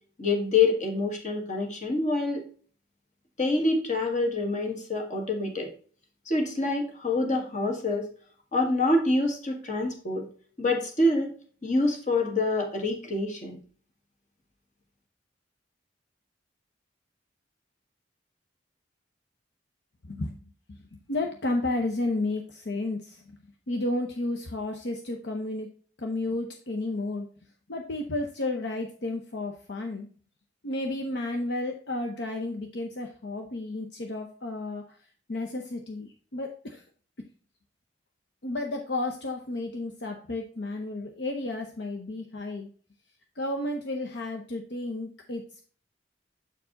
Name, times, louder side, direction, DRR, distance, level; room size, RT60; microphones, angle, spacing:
voice 1, 0.2-2.4 3.4-5.7 6.3-8.1 8.5-10.2 10.6-11.3 11.6-13.6, left 2 dB, 40° left, 2 dB, 1.6 m, -26 dB
voice 2, 20.0-23.4 23.7-25.7 26.0-27.3 27.7-30.1 30.6-36.8 38.4-42.7 43.4-45.6, left 2 dB, 65° left, 2 dB, 0.8 m, -32 dB
7.5 x 4.6 x 3.9 m, 0.43 s
head